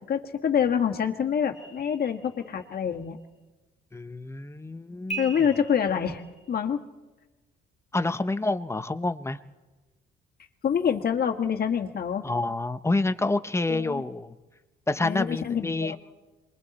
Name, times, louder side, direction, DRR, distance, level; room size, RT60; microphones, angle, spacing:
voice 1, 0.1-3.2 5.2-6.2 6.5-6.8 10.6-12.2 13.7-14.0 15.0-16.0, left 7 dB, 50° left, 5 dB, 1.8 m, -26 dB
sound 1, 1.5-2.8 5.1-6.6, right 3 dB, 35° left, 2.0 m, -40 dB
voice 2, 3.9-5.3 7.9-9.4 12.2-14.3 14.9-16.0, left 2 dB, 15° left, 10 dB, 0.9 m, -28 dB
27.0 x 22.5 x 4.3 m, 1.2 s
cardioid pair, 90°, 20 cm